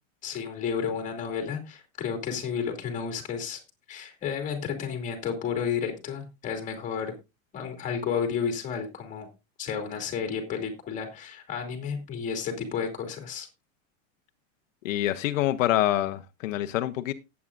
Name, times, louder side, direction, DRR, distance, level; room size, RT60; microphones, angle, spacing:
voice 1, 0.2-3.6 3.9-7.1 7.5-9.3 9.6-13.5, left 6 dB, 20° left, 2.5 m, -32 dB
voice 2, 14.8-17.1, left 13 dB, 75° left, 0.9 m, -26 dB
18.0 x 8.4 x 2.5 m
supercardioid pair, 175°, 39 cm